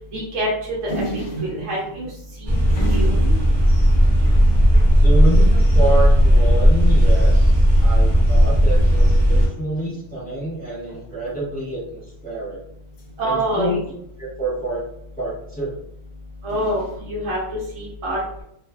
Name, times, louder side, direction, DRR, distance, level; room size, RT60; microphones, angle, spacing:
voice 1, 0.1-0.9 1.4-2.1 2.4-2.6 2.9-3.3 13.2-13.8 16.4-18.4, right 1 dB, 60° right, -6 dB, 1.0 m, -26 dB
sound 1, 0.9-6.8 7.2-7.3 7.5-8.0 8.9-9.5 10.8-11.3 12.9-14.3 16.5-17.0, right 2 dB, 55° left, 0.5 m, -35 dB
sound 2, 2.4-9.5, equal, 25° right, 0.6 m, -15 dB
voice 2, 5.0-12.6 13.2-13.8 14.2-14.8 15.2-15.8, right 2 dB, 5° left, -10 dB, 1.1 m, -27 dB
2.5 x 2.5 x 2.4 m, 0.72 s
omnidirectional pair, 1.6 m